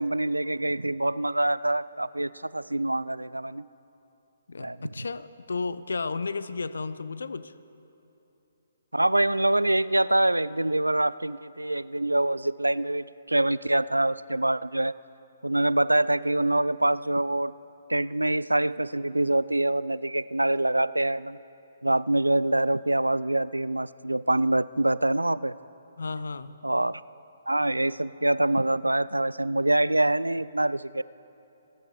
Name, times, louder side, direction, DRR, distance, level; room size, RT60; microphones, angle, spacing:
voice 1, 0.0-3.6 4.6-5.0 8.9-14.9 15.4-17.5 17.9-21.4 21.8-25.5 26.6-27.0 27.5-31.0, right 1 dB, 85° right, 18 dB, 0.3 m, -25 dB
voice 2, 4.5-7.5 26.0-26.5, left 4 dB, 65° left, 15 dB, 0.6 m, -33 dB
28.0 x 9.6 x 4.7 m, 2.9 s
figure-of-eight pair, 130°, 0 cm